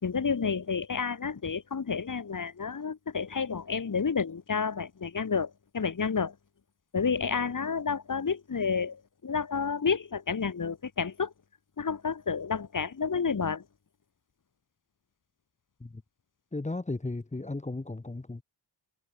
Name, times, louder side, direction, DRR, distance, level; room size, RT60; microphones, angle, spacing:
voice 1, 0.0-6.3 6.9-11.3 11.8-13.6, left 5 dB, 40° left, 4.7 m, -30 dB
voice 2, 16.5-18.4, left 2 dB, 15° left, 1.7 m, -35 dB
wide cardioid pair, 145°, 47 cm